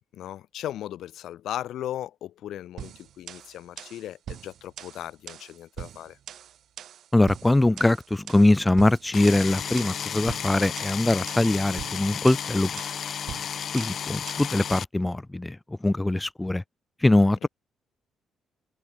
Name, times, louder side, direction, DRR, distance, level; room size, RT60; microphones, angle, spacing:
voice 1, 0.1-6.2 17.4-17.5, left 12 dB, 75° left, 3.9 m, -37 dB
sound 1, 2.8-14.6, right 10 dB, 70° right, 1.4 m, -43 dB
voice 2, 7.1-12.7 13.7-16.6 17.0-17.5, left 2 dB, 10° left, 0.6 m, -22 dB
sound 2, 9.1-14.8, left 8 dB, 55° left, 0.3 m, -33 dB
cardioid pair, 90°, 0 cm